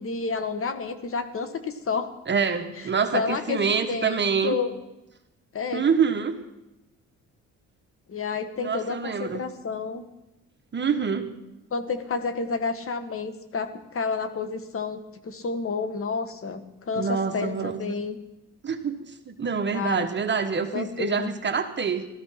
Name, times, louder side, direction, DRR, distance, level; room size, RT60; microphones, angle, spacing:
voice 1, 0.0-2.1 3.1-4.2 4.4-4.7 5.5-5.8 8.1-10.0 11.7-18.2 19.7-20.1 20.7-21.3, left 5 dB, 45° left, 9 dB, 1.8 m, -30 dB
voice 2, 2.3-4.6 5.7-6.4 8.6-9.4 10.7-11.3 16.9-17.8 18.6-22.1, right 6 dB, 35° right, 6 dB, 1.4 m, -26 dB
16.5 x 13.5 x 5.9 m, 0.94 s
cardioid pair, 90°, 30 cm